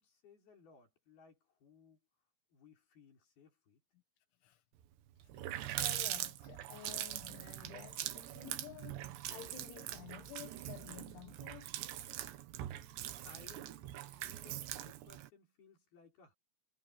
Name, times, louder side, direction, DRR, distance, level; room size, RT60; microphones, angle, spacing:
voice 1, 0.0-2.0 2.5-3.8 12.6-16.3, left 5 dB, 55° left, 7.8 m, -62 dB
Water tap faucet, 4.8-4.9 5.2-15.3, right 13 dB, 70° right, 3.4 m, -42 dB
voice 2, 5.2-11.7, left 15 dB, 85° left, 4.0 m, -52 dB
omnidirectional pair, 5.3 m